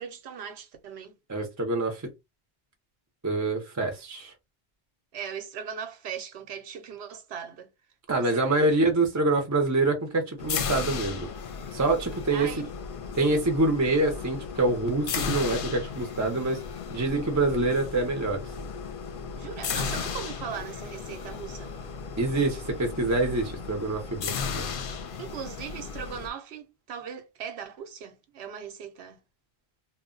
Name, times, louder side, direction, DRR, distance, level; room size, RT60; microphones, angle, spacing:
voice 1, 0.0-1.1 5.1-7.7 8.1-8.8 12.3-12.6 19.4-21.7 25.2-29.2, right 7 dB, 90° right, 0.9 m, -39 dB
voice 2, 1.3-2.0 3.2-4.3 8.1-11.3 11.7-12.5 13.1-16.6 16.9-18.4 22.2-24.7, right 2 dB, 20° right, 0.5 m, -26 dB
sound 1, 10.4-26.3, left 6 dB, 65° left, 0.7 m, -35 dB
2.1 x 2.1 x 3.6 m
omnidirectional pair, 1.0 m